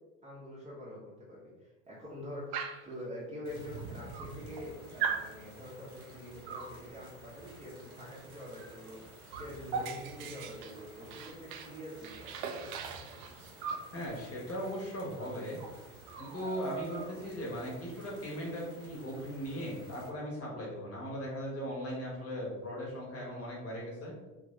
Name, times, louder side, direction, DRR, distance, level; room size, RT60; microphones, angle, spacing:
voice 1, 0.2-12.7, left 1 dB, 15° right, -6 dB, 0.9 m, -45 dB
Dog, 2.5-2.9 3.8-3.9 4.1-4.7 5.0-5.3 6.5-6.8 8.6-8.8 9.0-11.7 12.0-13.9 15.2-15.3 15.6-15.8 16.1-17.3, right 6 dB, 40° right, 0.4 m, -39 dB
sound 1, 3.4-20.1, right 2 dB, 85° right, 0.7 m, -52 dB
voice 2, 13.9-15.6 16.2-24.1, equal, 35° left, -3 dB, 1.3 m, -38 dB
3.4 x 2.6 x 3.1 m, 1.2 s
figure-of-eight pair, 70°, 43 cm